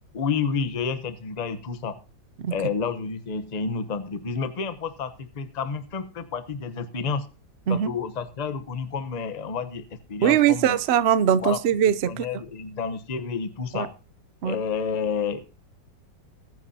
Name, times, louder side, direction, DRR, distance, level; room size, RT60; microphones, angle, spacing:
voice 1, 0.1-2.0 2.5-7.3 7.7-10.8 11.4-11.6 12.0-13.9 14.4-15.4, left 5 dB, 30° left, 11 dB, 0.7 m, -30 dB
voice 2, 10.2-12.2 13.7-13.9 14.4-14.6, right 9 dB, 90° right, 15 dB, 0.5 m, -21 dB
20.5 x 9.5 x 2.8 m, 0.34 s
omnidirectional pair, 2.1 m